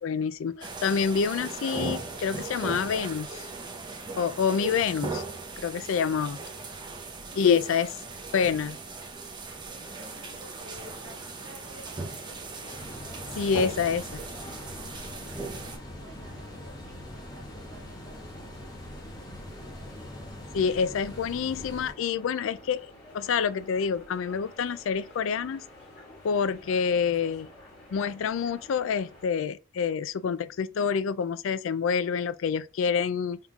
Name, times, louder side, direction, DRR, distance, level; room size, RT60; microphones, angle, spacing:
voice 1, 0.0-3.5 4.2-5.2 5.6-6.4 7.4-7.9 8.3-8.8 13.4-14.2 20.5-25.6 26.2-27.5 27.9-33.4, left 6 dB, 65° left, 0.3 m, -27 dB
sound 1, 0.6-15.8, right 3 dB, 20° right, 0.7 m, -38 dB
voice 2, 6.8-7.8 9.6-12.7 15.1-18.5, right 1 dB, 60° right, 1.0 m, -53 dB
sound 2, 9.8-29.3, left 1 dB, 50° left, 2.4 m, -50 dB
sound 3, 12.8-21.9, left 1 dB, 20° left, 1.1 m, -43 dB
5.6 x 3.6 x 2.3 m
head